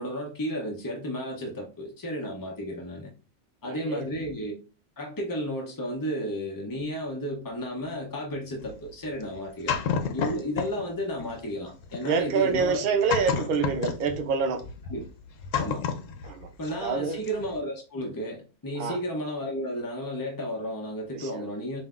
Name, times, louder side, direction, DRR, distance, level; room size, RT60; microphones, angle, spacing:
voice 1, 0.0-3.1 3.6-4.5 5.0-9.8 10.1-12.8 14.9-15.0 15.5-15.9 16.6-21.8, equal, 25° left, 0.4 m, -33 dB
voice 2, 3.6-4.1 12.0-14.6 16.2-16.5 16.8-17.2 18.8-19.0 21.1-21.5, right 5 dB, 60° right, 0.6 m, -27 dB
sound 1, 8.6-10.9 11.2-17.0 17.2-17.6, left 6 dB, 75° left, 1.0 m, -32 dB
5.5 x 2.6 x 2.4 m
omnidirectional pair, 1.4 m